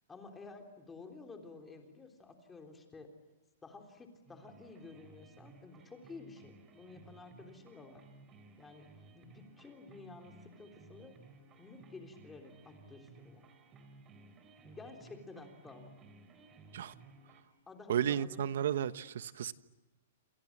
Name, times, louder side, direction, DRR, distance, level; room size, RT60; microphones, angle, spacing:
voice 1, 0.1-3.1 3.6-8.0 8.6-11.2 11.6-13.4 14.6-16.0 17.7-18.4, left 3 dB, 10° left, 4 dB, 3.6 m, -52 dB
sound 1, 4.3-17.4, right 3 dB, 20° right, 3.4 m, -58 dB
voice 2, 17.9-19.5, right 9 dB, 65° right, 13 dB, 1.2 m, -33 dB
28.0 x 28.0 x 7.5 m, 1.1 s
hypercardioid pair, 165°, 0 cm